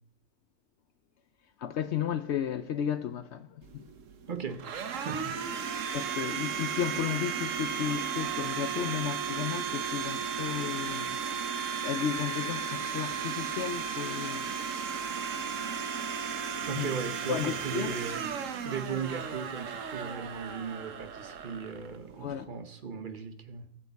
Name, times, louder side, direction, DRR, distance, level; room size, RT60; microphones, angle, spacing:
voice 1, 1.6-3.8 5.9-11.2 11.8-15.1 16.6-16.9 17.3-18.0 22.2-22.5, left 9 dB, 70° left, 0.6 m, -34 dB
Domestic sounds home sounds, 3.6-22.4, right 7 dB, 60° right, 1.2 m, -35 dB
voice 2, 4.3-5.4 6.1-6.2 16.7-18.3 18.6-23.7, right 6 dB, 40° right, 0.8 m, -37 dB
19.0 x 6.5 x 4.0 m
omnidirectional pair, 1.6 m